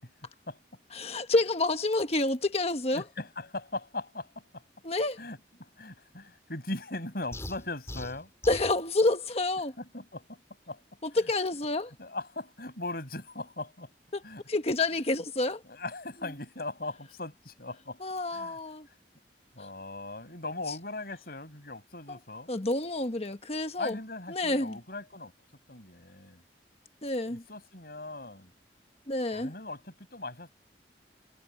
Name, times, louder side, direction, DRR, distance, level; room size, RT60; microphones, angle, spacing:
voice 1, 0.0-0.6 2.9-4.6 5.2-8.3 9.8-10.4 10.7-10.8 11.1-11.2 12.0-13.9 14.2-14.4 15.6-18.0 18.3-18.6 19.5-22.5 23.8-25.3 25.7-26.4 27.3-28.5 29.3-30.5, left 2 dB, 55° left, 7.7 m, -39 dB
voice 2, 0.9-3.0 4.8-5.2 8.5-9.7 11.0-11.9 14.1-14.2 14.5-15.6 18.0-18.9 22.1-22.2 22.5-24.0 24.3-24.8 27.0-27.4 29.1-29.5, left 2 dB, 35° left, 1.3 m, -28 dB
sound 1, 7.3-8.8, left 1 dB, 15° left, 4.8 m, -40 dB
head